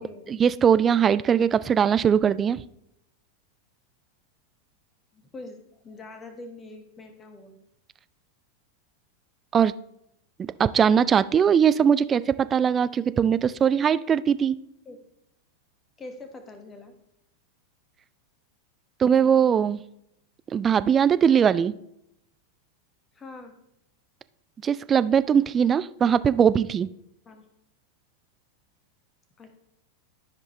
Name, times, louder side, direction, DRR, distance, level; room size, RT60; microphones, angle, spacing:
voice 1, 0.3-2.6 9.5-9.7 10.4-14.6 19.0-19.8 20.5-21.7 24.6-26.9, right 7 dB, 20° right, 15 dB, 0.3 m, -20 dB
voice 2, 5.1-5.6 5.8-7.6 14.8-15.0 16.0-17.0 23.1-23.5 27.2-27.4 29.4-29.6, left 2 dB, 20° left, 7 dB, 1.4 m, -43 dB
13.5 x 5.2 x 3.1 m, 0.80 s
figure-of-eight pair, 90°, 0 cm